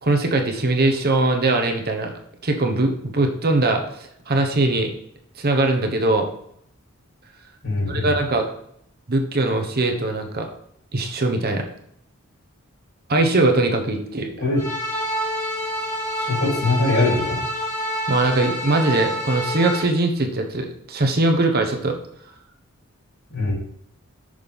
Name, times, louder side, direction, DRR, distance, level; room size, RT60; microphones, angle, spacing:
voice 1, 0.0-2.1 2.4-4.9 5.4-6.3 7.9-8.5 9.1-10.5 10.9-11.7 13.1-14.3 18.1-22.0, right 2 dB, 50° right, 4 dB, 1.0 m, -21 dB
voice 2, 7.6-8.2 14.4-14.6 16.2-17.4 23.3-23.5, left 2 dB, 65° left, -3 dB, 3.6 m, -22 dB
sound 1, 14.6-19.8, equal, 15° left, 1.5 m, -27 dB
6.5 x 5.7 x 5.3 m, 0.71 s
head